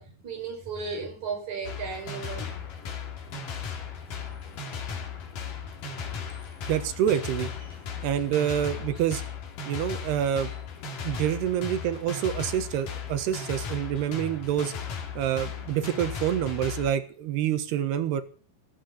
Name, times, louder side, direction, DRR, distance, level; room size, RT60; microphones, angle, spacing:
voice 1, 0.0-2.5, right 5 dB, 45° right, 6.4 m, -35 dB
sound 1, 1.6-16.9, left 6 dB, 60° left, 3.8 m, -36 dB
voice 2, 6.7-7.5 8.0-9.2 9.7-10.5 11.0-14.7 15.1-18.2, right 10 dB, 80° right, 3.4 m, -27 dB
14.0 x 13.5 x 6.9 m
omnidirectional pair, 4.6 m